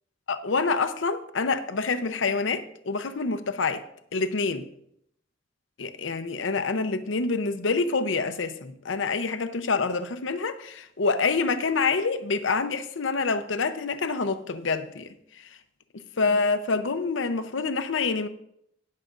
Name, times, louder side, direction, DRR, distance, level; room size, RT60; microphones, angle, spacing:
voice 1, 0.3-3.8 4.1-4.7 5.8-15.1 15.4-15.5 15.9-18.3, left 4 dB, 80° left, 0.7 m, -27 dB
18.5 x 6.5 x 2.5 m
head